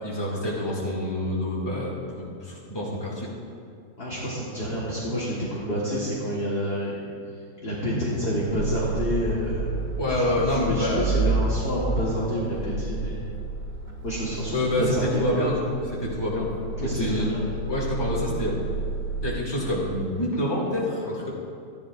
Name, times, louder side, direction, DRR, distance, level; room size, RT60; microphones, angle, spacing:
voice 1, 0.0-3.3 10.0-11.1 14.5-16.5 16.8-17.4 17.7-18.6 19.2-21.3, left 1 dB, 10° left, -5 dB, 2.1 m, -27 dB
voice 2, 4.0-7.0 7.6-9.8 10.1-13.3 14.0-15.4 16.8-17.4, equal, 30° left, -7 dB, 1.4 m, -28 dB
sound 1, 8.5-19.4, right 3 dB, 35° right, 0.7 m, -31 dB
14.0 x 11.0 x 2.5 m, 2.5 s
omnidirectional pair, 2.3 m